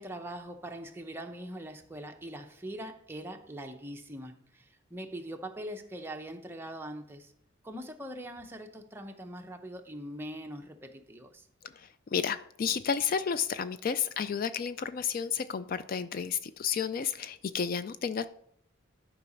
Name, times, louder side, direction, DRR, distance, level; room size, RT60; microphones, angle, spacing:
voice 1, 0.0-7.3 7.6-11.5, right 1 dB, 10° right, 0.7 m, -42 dB
voice 2, 11.6-18.3, left 7 dB, 45° left, 0.3 m, -32 dB
11.5 x 4.9 x 5.3 m
head